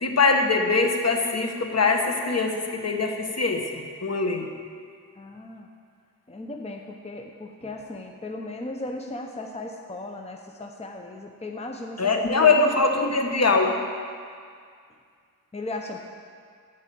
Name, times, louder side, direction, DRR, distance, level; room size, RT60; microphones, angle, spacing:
voice 1, 0.0-4.5 12.0-13.8, left 3 dB, 45° left, 4 dB, 1.2 m, -22 dB
voice 2, 5.2-5.7 6.3-12.6 15.5-16.0, left 2 dB, 20° left, 2 dB, 0.8 m, -36 dB
13.5 x 4.8 x 8.6 m, 2.1 s
wide cardioid pair, 90°, 35 cm